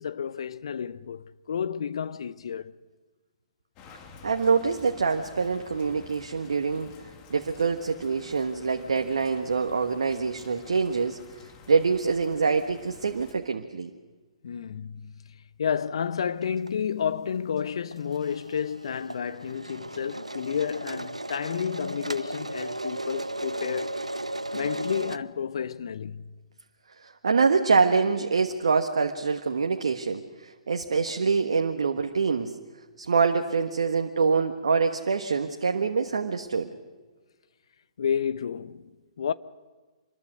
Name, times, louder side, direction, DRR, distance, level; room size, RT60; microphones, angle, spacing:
voice 1, 0.0-2.7 14.4-24.0 24.5-26.4 38.0-39.3, left 7 dB, 60° left, 0.8 m, -31 dB
sound 1, 3.8-13.3, left 4 dB, 30° left, 2.8 m, -50 dB
voice 2, 4.2-6.9 7.3-11.2 11.7-13.9 27.0-32.5 33.0-36.7, right 5 dB, 65° right, 1.4 m, -25 dB
sound 2, 16.4-16.7 17.0-17.1 17.3-25.2, right 1 dB, 90° right, 0.8 m, -36 dB
26.0 x 22.0 x 6.4 m
figure-of-eight pair, 120°, 3 cm